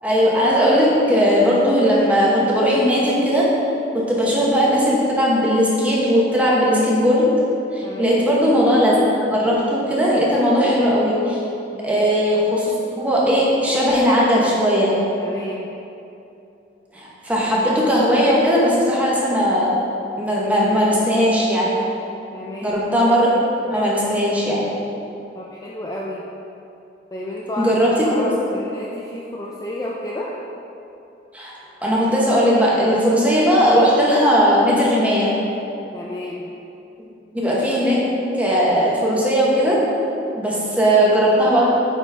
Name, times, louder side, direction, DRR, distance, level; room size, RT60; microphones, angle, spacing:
voice 1, 0.0-3.5 3.9-7.3 7.7-11.4 11.8-15.0 16.9-19.7 20.2-21.7 22.6-24.7 27.6-28.3 31.3-31.5 31.8-35.3 37.3-39.8 40.4-41.7, equal, 10° right, -6 dB, 1.1 m, -18 dB
voice 2, 7.8-8.2 11.7-12.1 15.2-15.7 22.3-22.8 25.3-26.2 27.1-27.7 28.0-30.3 35.9-36.5 40.7-40.8, left 1 dB, 20° left, -4 dB, 0.4 m, -31 dB
8.1 x 4.2 x 3.4 m, 2.8 s
head